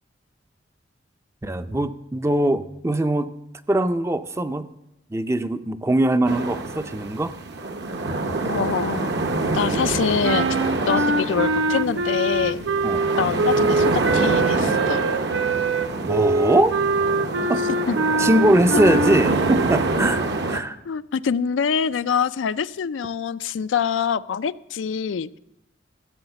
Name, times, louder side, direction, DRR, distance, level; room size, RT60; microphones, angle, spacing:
voice 1, 1.4-3.4 3.7-4.7 5.1-7.4 12.8-13.2 16.0-16.8 17.5-17.6 18.2-20.8, right 1 dB, 15° right, 0.4 m, -22 dB
sound 1, 6.3-20.6, right 2 dB, 60° right, 1.0 m, -26 dB
voice 2, 8.5-9.1 9.5-10.5 10.9-12.6 13.2-15.1 17.9-18.0 18.7-18.8 20.9-25.4, left 6 dB, 85° left, 0.4 m, -25 dB
sound 2, 10.2-19.9, right 3 dB, 85° right, 0.6 m, -23 dB
14.5 x 7.2 x 6.8 m
head